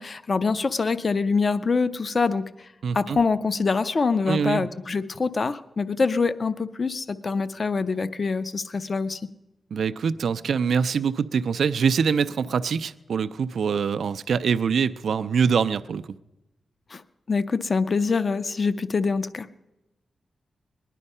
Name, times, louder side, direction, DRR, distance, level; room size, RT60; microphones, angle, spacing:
voice 1, 0.0-2.5 2.9-9.2 16.9-17.0 17.3-19.5, left 4 dB, 35° left, 13 dB, 0.5 m, -25 dB
voice 2, 2.8-3.2 4.3-4.7 9.7-16.0, right 6 dB, 70° right, 12 dB, 0.4 m, -24 dB
20.0 x 11.0 x 5.5 m, 0.95 s
wide cardioid pair, 175°, 0 cm